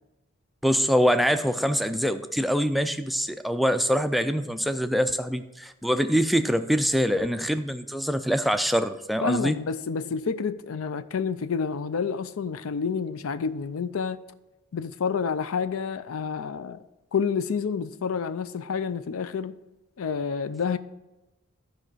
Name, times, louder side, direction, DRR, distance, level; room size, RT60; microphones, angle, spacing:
voice 1, 0.6-9.6, equal, ahead, 0.3 m, -24 dB
voice 2, 9.2-14.2 14.7-16.8 17.1-19.6 20.0-20.8, left 5 dB, 75° left, 0.5 m, -29 dB
12.0 x 5.1 x 4.6 m
head